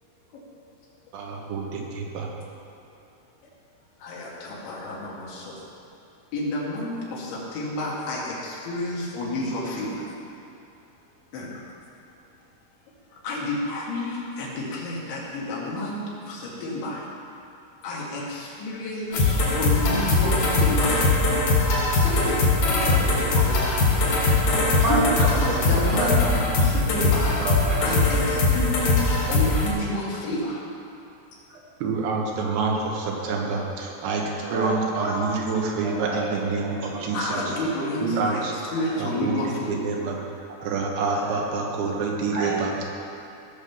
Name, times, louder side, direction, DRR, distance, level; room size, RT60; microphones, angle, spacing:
voice 1, 1.1-2.3 26.2-26.4 31.8-34.2 34.5-37.4 38.0-38.6 39.0-40.2 40.6-42.7, right 4 dB, 80° right, -1 dB, 3.7 m, -27 dB
voice 2, 4.0-5.6 6.3-10.0 11.3-11.5 13.2-17.1 17.8-21.1 21.9-24.5 24.9-26.3 26.6-27.3 27.8-30.6 37.1-39.8, left 1 dB, 85° left, -5 dB, 4.5 m, -30 dB
sound 1, 19.1-29.7, left 3 dB, 65° left, 4.3 m, -21 dB
voice 3, 24.3-26.1 26.6-26.9 27.2-27.8 33.5-33.6 33.9-34.0 34.4-35.2 35.8-36.3 36.6-37.7 38.8-38.9 41.1-41.4 42.3-42.8, right 2 dB, 60° right, -4 dB, 2.2 m, -30 dB
17.5 x 5.8 x 7.1 m, 2.7 s
omnidirectional pair, 5.1 m